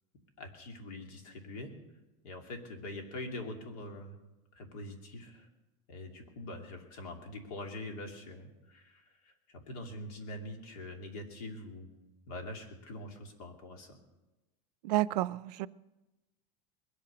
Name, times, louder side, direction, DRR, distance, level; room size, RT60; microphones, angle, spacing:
voice 1, 0.4-1.7 2.2-4.2 4.5-5.5 5.9-11.9 12.3-14.0, left 1 dB, 70° left, 2.6 m, -44 dB
voice 2, 14.8-15.7, right 17 dB, 80° right, 0.5 m, -30 dB
21.5 x 8.7 x 6.1 m
supercardioid pair, 175°, 20 cm